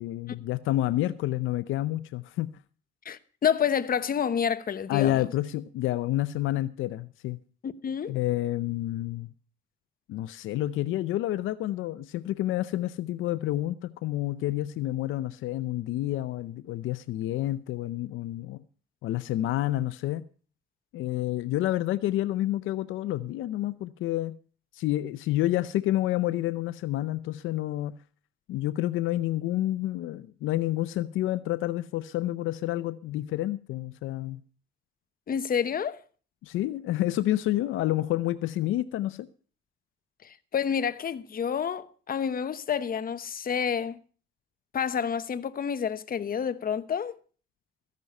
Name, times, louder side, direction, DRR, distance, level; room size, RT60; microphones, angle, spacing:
voice 1, 0.0-2.5 4.9-7.4 8.1-9.3 10.1-18.6 19.0-20.2 20.9-24.3 24.7-27.9 28.5-34.4 36.4-39.3, left 14 dB, 90° left, 0.6 m, -29 dB
voice 2, 3.0-5.2 7.6-8.2 35.3-36.0 40.2-44.0 44.7-47.2, left 7 dB, 45° left, 1.1 m, -29 dB
14.5 x 10.5 x 5.4 m
cardioid pair, 90°, 20 cm